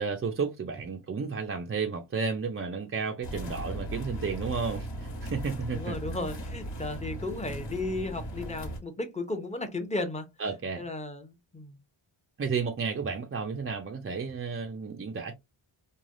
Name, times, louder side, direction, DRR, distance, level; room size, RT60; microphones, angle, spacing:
voice 1, 0.0-6.0 10.4-10.9 12.4-15.3, right 5 dB, 30° right, 0.4 m, -32 dB
sound 1, 3.2-8.8, right 1 dB, 70° left, 1.4 m, -37 dB
voice 2, 5.7-10.3 10.8-11.8, left 2 dB, 15° left, 0.7 m, -34 dB
3.2 x 2.2 x 2.5 m
wide cardioid pair, 95°, 49 cm